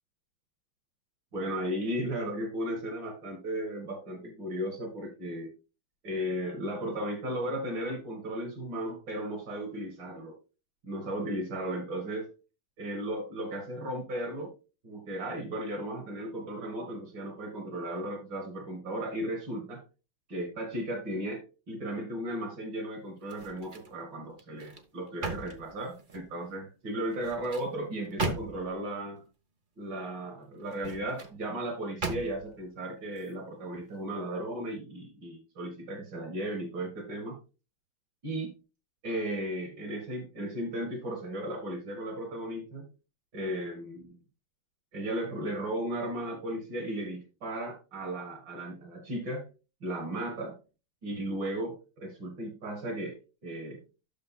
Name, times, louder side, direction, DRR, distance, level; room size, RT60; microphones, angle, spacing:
voice 1, 1.3-5.5 6.0-10.3 10.8-12.3 12.8-14.5 14.8-19.8 20.3-21.4 21.7-29.2 29.8-37.4 38.2-38.5 39.0-42.9 43.3-44.2 44.9-49.5 49.8-50.6 51.0-53.2 53.4-53.8, right 1 dB, 65° right, 3 dB, 2.9 m, -35 dB
sound 1, 23.2-24.0 24.4-26.3 27.1-28.8 30.6-31.4 32.0-32.6 33.1-33.3, right 2 dB, 35° right, 0.9 m, -38 dB
12.0 x 6.8 x 2.2 m, 0.30 s
omnidirectional pair, 2.2 m